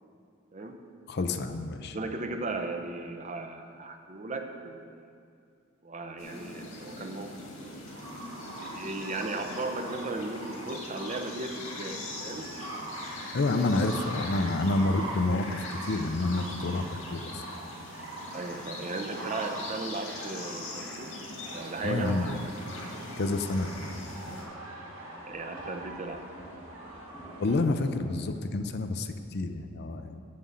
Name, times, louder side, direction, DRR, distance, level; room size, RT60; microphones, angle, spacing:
voice 1, 1.1-2.0 13.3-17.4 21.8-22.4 23.2-24.0 24.3-24.4 27.4-30.2, left 2 dB, 50° left, 8 dB, 0.5 m, -29 dB
voice 2, 1.8-5.0 5.8-7.3 7.7-7.9 8.6-12.5 18.3-21.1 21.5-22.5 25.3-26.2, right 3 dB, 35° right, 5 dB, 0.7 m, -36 dB
sound 1, 6.2-24.4, left 2 dB, 75° left, 2.0 m, -43 dB
sound 2, 7.9-27.6, right 1 dB, 70° right, 1.8 m, -43 dB
sound 3, 18.0-28.9, equal, 5° left, 1.0 m, -50 dB
7.5 x 6.9 x 7.5 m, 2.3 s
head